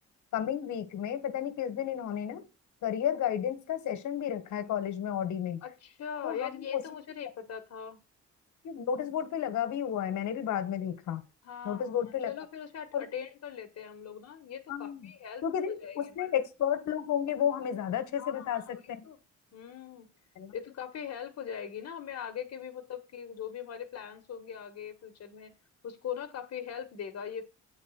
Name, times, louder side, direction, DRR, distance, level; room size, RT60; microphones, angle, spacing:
voice 1, 0.3-2.4 2.8-5.6 6.2-6.8 8.6-11.2 11.6-12.3 12.9-13.1 14.7-15.1 15.4-19.0 20.4-20.5, left 9 dB, 75° left, 1.4 m, -32 dB
voice 2, 5.6-8.0 11.4-15.4 15.8-16.3 18.2-19.2 19.5-20.1 20.5-25.5 25.8-27.5, left 8 dB, 60° left, 1.2 m, -41 dB
8.5 x 4.1 x 6.3 m
cardioid pair, 90°, 30 cm